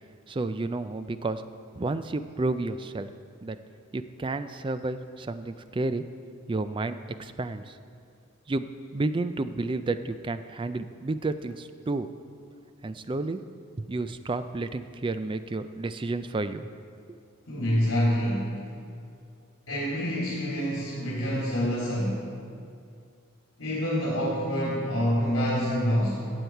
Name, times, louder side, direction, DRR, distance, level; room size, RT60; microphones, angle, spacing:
voice 1, 0.3-1.4 1.8-3.1 3.4-3.6 3.9-6.0 6.5-7.8 8.5-12.1 12.8-13.4 13.8-16.7 17.1-17.2, right 2 dB, 25° right, 11 dB, 0.3 m, -31 dB
voice 2, 17.5-18.6 19.7-22.3 23.6-26.2, equal, 65° left, -7 dB, 3.0 m, -27 dB
15.0 x 8.1 x 4.5 m, 2.3 s
head